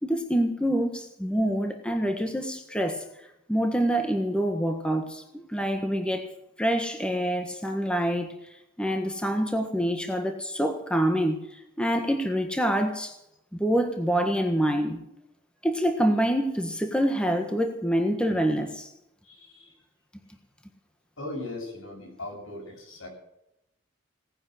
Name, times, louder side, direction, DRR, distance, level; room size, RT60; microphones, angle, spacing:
voice 1, 0.0-3.0 3.5-8.4 8.8-13.2 13.5-15.0 15.6-18.9, equal, 5° left, 1.5 m, -26 dB
voice 2, 19.2-19.7 21.2-23.1, left 2 dB, 80° left, 7.8 m, -38 dB
18.0 x 10.5 x 6.4 m
head